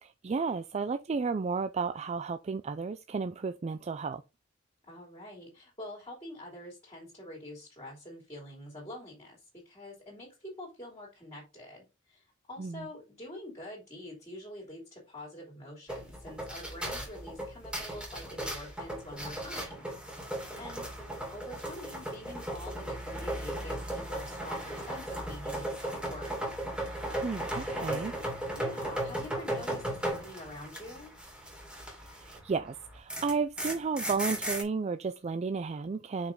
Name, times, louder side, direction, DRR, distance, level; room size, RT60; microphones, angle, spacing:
voice 1, 0.0-4.2 12.6-12.9 27.2-28.1 32.0-36.3, right 4 dB, 35° right, 0.4 m, -33 dB
voice 2, 4.9-19.9 20.6-20.9 21.3-26.4 27.7-28.1 28.5-31.1, left 1 dB, 25° left, 2.9 m, -46 dB
sound 1, 15.9-32.5 32.8-34.6, right 1 dB, 5° right, 2.5 m, -36 dB
5.8 x 5.1 x 3.7 m
head